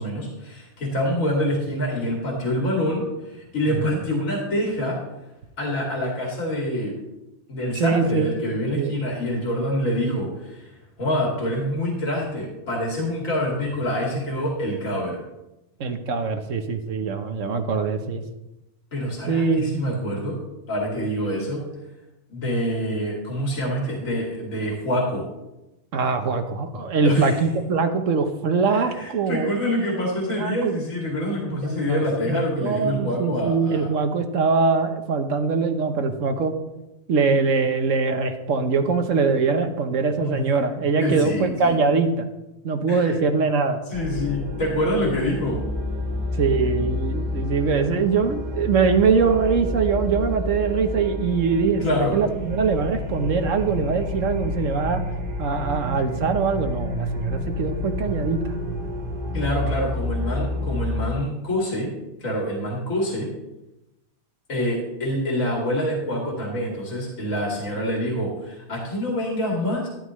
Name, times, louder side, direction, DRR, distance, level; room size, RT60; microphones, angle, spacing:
voice 1, 0.0-5.0 5.6-6.9 7.5-10.6 11.0-15.2 18.9-20.4 20.7-21.6 22.3-25.2 27.0-27.4 28.7-33.9 40.2-40.4 41.0-41.8 42.9-43.4 43.9-45.6 51.8-52.2 59.3-61.9 62.2-63.3 64.5-69.9, equal, 65° left, -2 dB, 2.9 m, -26 dB
voice 2, 3.7-4.0 7.7-8.3 8.7-9.0 15.8-18.2 19.3-19.8 25.9-29.5 30.3-30.7 31.6-36.5 37.1-42.3 42.6-43.8 46.4-55.0 55.4-58.5, right 5 dB, 65° right, 7 dB, 1.3 m, -23 dB
sound 1, 43.9-61.1, left 1 dB, 40° right, 1.3 m, -29 dB
13.0 x 11.5 x 3.1 m, 0.95 s
omnidirectional pair, 1.5 m